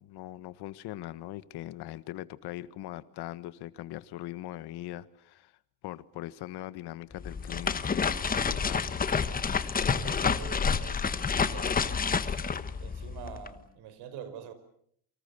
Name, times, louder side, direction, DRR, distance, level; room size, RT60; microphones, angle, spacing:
voice 1, 0.0-5.5 5.8-9.0, left 15 dB, 75° left, 1.4 m, -41 dB
sound 1, 7.1-13.5, left 6 dB, 20° left, 1.2 m, -29 dB
voice 2, 9.9-11.8 12.8-14.5, right 8 dB, 85° right, 4.8 m, -45 dB
29.0 x 25.0 x 6.8 m
cardioid pair, 155°, 40 cm